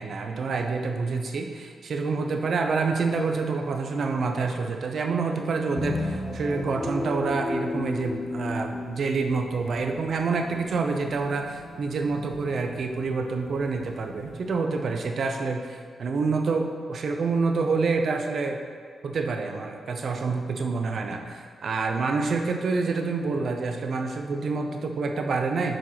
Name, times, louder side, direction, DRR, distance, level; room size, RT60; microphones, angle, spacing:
voice 1, 0.0-18.6 19.0-25.8, right 4 dB, 65° right, 4 dB, 0.7 m, -27 dB
sound 1, 5.8-14.5, left 2 dB, 25° left, 1.0 m, -35 dB
6.6 x 4.7 x 5.9 m, 2.1 s
supercardioid pair, 45°, 0 cm